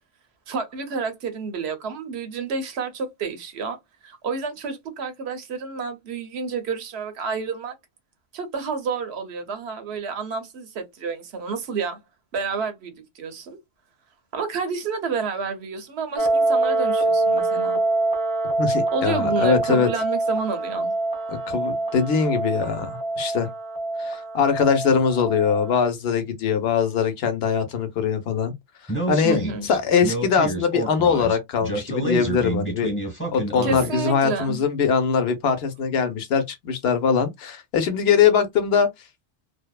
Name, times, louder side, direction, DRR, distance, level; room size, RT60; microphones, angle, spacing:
voice 1, 0.5-3.8 4.0-7.7 8.3-12.0 12.3-13.6 14.3-17.9 18.9-20.9 29.2-29.7 33.6-34.6, right 5 dB, 75° right, 0.9 m, -30 dB
sound 1, 16.2-25.8, right 2 dB, 30° right, 0.4 m, -25 dB
voice 2, 18.6-19.9 21.3-23.5 24.0-28.5 29.1-32.9 33.3-38.9, left 6 dB, 70° left, 0.8 m, -22 dB
Speech, 28.9-34.1, right 2 dB, 10° left, 1.1 m, -29 dB
2.6 x 2.1 x 2.2 m
omnidirectional pair, 1.1 m